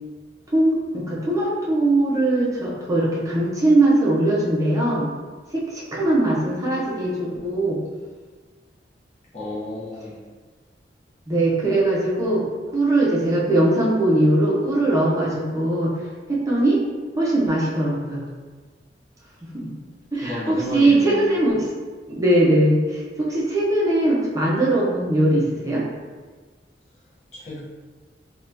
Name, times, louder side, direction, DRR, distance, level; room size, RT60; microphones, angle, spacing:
voice 1, 0.5-5.1 5.5-7.8 11.3-12.5 12.7-15.9 16.3-16.8 17.2-18.2 19.4-19.7 20.1-21.7 22.1-25.8, right 1 dB, 20° right, -6 dB, 0.5 m, -20 dB
voice 2, 9.3-10.3 20.2-21.3 27.3-27.6, left 1 dB, 40° left, -7 dB, 0.6 m, -32 dB
2.7 x 2.2 x 3.2 m, 1.4 s
head